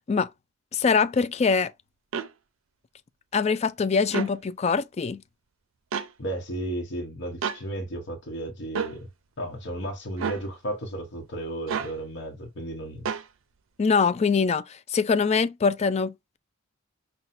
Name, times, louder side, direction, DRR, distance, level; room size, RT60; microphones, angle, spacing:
voice 1, 0.7-1.7 3.3-5.2 13.8-16.4, left 5 dB, 30° left, 0.3 m, -23 dB
sound 1, 2.1-2.3 4.1-4.3 5.9-6.1 7.4-7.6 8.7-9.0 10.2-10.4 11.7-11.9 13.1-13.3, right 6 dB, 75° right, 0.5 m, -29 dB
voice 2, 6.2-9.0 9.4-13.1, right 1 dB, 60° left, 0.9 m, -34 dB
5.7 x 2.2 x 2.5 m
head